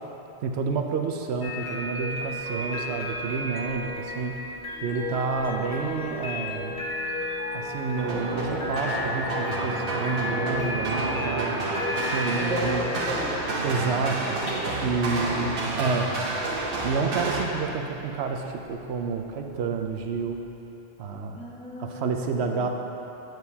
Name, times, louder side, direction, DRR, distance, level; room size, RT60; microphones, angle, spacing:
voice 1, 0.4-4.4 4.8-6.8 7.5-11.6 12.0-12.8 13.6-15.5 15.8-16.1 16.8-20.4 21.0-21.4 21.8-22.7, right 5 dB, 80° right, 4 dB, 0.9 m, -29 dB
sound 1, 1.4-20.4, left 1 dB, 60° left, 1.3 m, -34 dB
sound 2, 8.0-17.5, right 2 dB, 60° right, 0.9 m, -30 dB
voice 2, 12.3-13.6 15.0-15.6 21.3-22.7, equal, 5° left, -4 dB, 0.9 m, -36 dB
8.9 x 7.8 x 2.8 m, 2.9 s
omnidirectional pair, 1.1 m